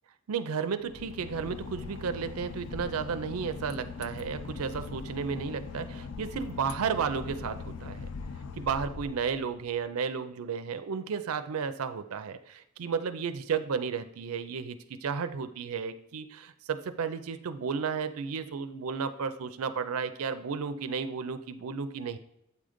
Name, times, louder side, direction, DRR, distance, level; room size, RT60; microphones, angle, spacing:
voice 1, 0.3-8.1 8.5-22.2, right 6 dB, 85° right, 10 dB, 0.5 m, -33 dB
Boat Water vehicle / Engine, 0.8-9.8, left 5 dB, 75° left, 0.4 m, -41 dB
8.3 x 3.8 x 5.0 m, 0.81 s
head